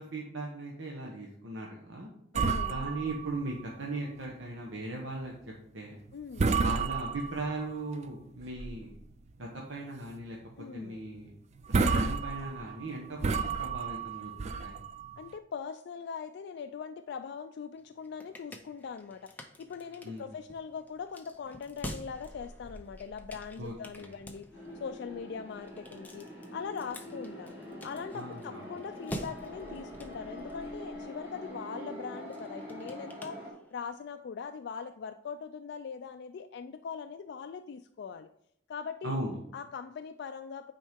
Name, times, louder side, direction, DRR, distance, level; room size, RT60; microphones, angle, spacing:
voice 1, 0.0-2.1 2.7-5.3 5.7-6.0 6.5-8.9 9.4-11.3 11.7-14.3 14.6-14.8 20.0-20.3 23.6-24.2 28.1-28.7 39.0-39.4, right 2 dB, 80° right, -2 dB, 1.1 m, -38 dB
voice 2, 2.3-2.8 6.1-6.5 10.6-11.0 15.2-24.4 24.8-26.3 26.5-27.5 27.8-33.4 33.7-38.3 38.7-39.2 39.5-40.7, left 6 dB, 60° left, 8 dB, 0.3 m, -41 dB
sound 1, 2.3-4.2 4.5-4.6 5.2-5.4 5.9-6.1 6.4-7.7 8.2-9.0 9.4-9.5 10.0-10.2 10.5-10.6 11.2-11.3 11.6-15.3, right 4 dB, 35° right, 0.4 m, -31 dB
sound 2, 17.8-34.0, equal, 10° left, 0.7 m, -48 dB
sound 3, 24.5-33.5, equal, 10° right, 2.7 m, -44 dB
9.3 x 4.4 x 3.6 m, 0.72 s
head